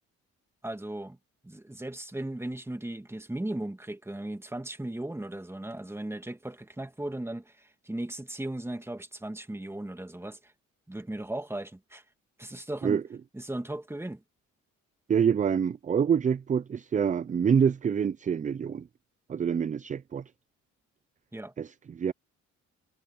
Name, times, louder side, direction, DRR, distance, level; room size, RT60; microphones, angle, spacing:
voice 1, 0.6-1.2 1.4-10.5 10.9-12.0 12.4-13.0 13.3-14.2 21.3-21.5, right 1 dB, 10° right, 2.1 m, -37 dB
voice 2, 15.1-18.9 19.3-20.2 21.6-22.1, right 7 dB, 25° right, 0.4 m, -26 dB
cardioid pair, 90°, 30 cm